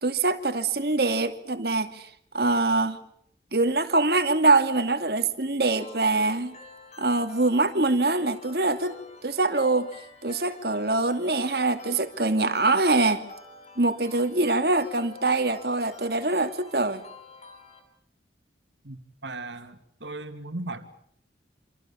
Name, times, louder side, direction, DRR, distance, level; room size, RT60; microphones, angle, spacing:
voice 1, 0.0-2.1 2.3-3.0 3.5-6.6 7.0-9.9 10.2-13.2 13.8-17.0, right 3 dB, 55° right, 2.6 m, -24 dB
sound 1, 5.8-17.8, left 3 dB, 40° left, 6.3 m, -48 dB
voice 2, 18.8-20.9, right 2 dB, 75° right, 2.6 m, -37 dB
28.5 x 27.5 x 7.2 m
head